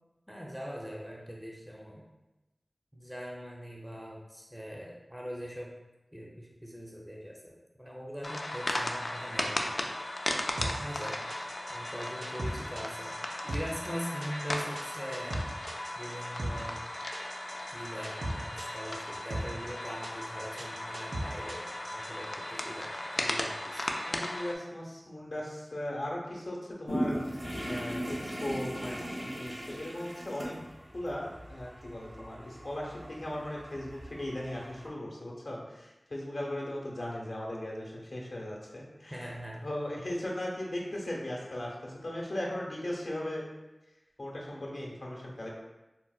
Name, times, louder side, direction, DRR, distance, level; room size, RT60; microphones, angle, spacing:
voice 1, 0.3-2.0 2.9-5.7 6.1-9.8 10.6-11.2 11.7-13.2 13.4-15.4 16.0-16.8 17.7-23.8 39.1-39.7, equal, 5° right, -3 dB, 0.5 m, -41 dB
sound 1, 8.2-24.6, left 1 dB, 65° left, 0.3 m, -36 dB
sound 2, 10.6-22.1, right 1 dB, 90° right, 0.4 m, -38 dB
voice 2, 24.0-27.2 27.7-30.5 30.9-39.2 39.6-43.4 44.2-45.5, left 1 dB, 80° left, -3 dB, 0.7 m, -38 dB
sound 3, 26.9-34.9, equal, 55° right, 0.8 m, -39 dB
4.1 x 2.1 x 2.3 m, 1.0 s
wide cardioid pair, 45°, 0 cm